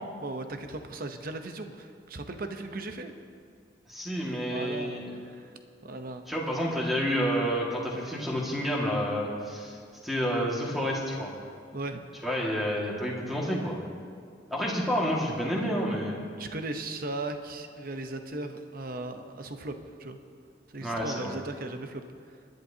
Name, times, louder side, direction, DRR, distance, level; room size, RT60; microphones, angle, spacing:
voice 1, 0.2-3.1 4.5-5.5 5.8-6.2 11.7-12.0 16.4-20.2 20.7-22.4, right 2 dB, 50° right, 6 dB, 0.8 m, -37 dB
voice 2, 3.9-5.1 6.3-9.8 10.0-11.3 12.2-13.8 14.5-16.2 20.8-21.3, equal, ahead, -4 dB, 1.9 m, -29 dB
26.0 x 10.5 x 2.8 m, 2.2 s
head